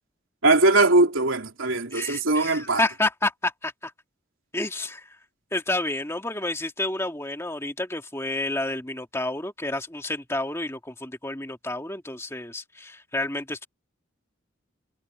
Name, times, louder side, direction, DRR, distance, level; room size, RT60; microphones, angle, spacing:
voice 1, 0.4-2.8, right 2 dB, 75° right, 3.0 m, -20 dB
voice 2, 1.9-3.9 4.5-5.2 5.5-13.7, left 2 dB, 15° left, 2.1 m, -30 dB
head